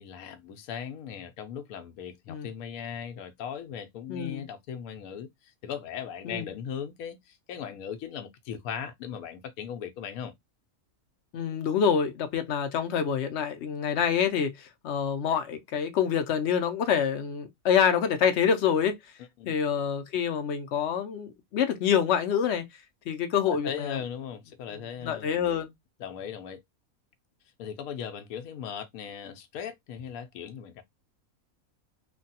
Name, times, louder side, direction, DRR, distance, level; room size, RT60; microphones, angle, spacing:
voice 1, 0.0-10.3 19.4-19.6 23.5-25.3 26.0-26.6 27.6-30.8, left 8 dB, 80° left, 1.0 m, -38 dB
voice 2, 4.1-4.5 6.2-6.5 11.3-18.9 19.4-22.7 23.1-24.0 25.0-25.7, left 7 dB, 65° left, 0.8 m, -26 dB
3.2 x 2.2 x 2.7 m
omnidirectional pair, 1.5 m